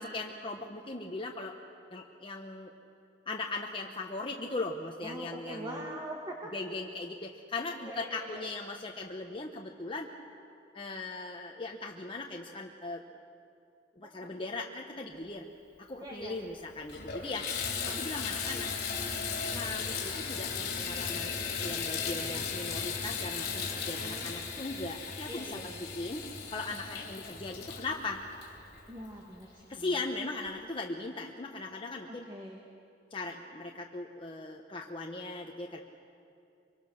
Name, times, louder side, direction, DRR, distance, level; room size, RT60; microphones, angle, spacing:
voice 1, 0.0-1.6 1.9-2.7 3.3-6.0 6.5-10.1 10.7-13.0 14.0-15.5 15.8-17.5 17.8-18.7 19.5-26.2 26.5-28.2 29.7-32.2 33.1-35.8, left 2 dB, 30° left, 1 dB, 1.1 m, -39 dB
voice 2, 5.0-6.5 7.8-8.4 14.0-14.3 15.9-16.4 17.4-18.0 24.0-24.3 25.3-25.9 27.0-27.1 28.9-29.9 32.1-32.6, right 1 dB, 25° right, -2 dB, 2.0 m, -44 dB
Water tap faucet / Bathtub (filling or washing), 16.2-16.3 16.8-29.2 29.8-29.9 30.5-30.6, left 5 dB, 60° left, 3.4 m, -36 dB
24.0 x 24.0 x 6.5 m, 2.5 s
head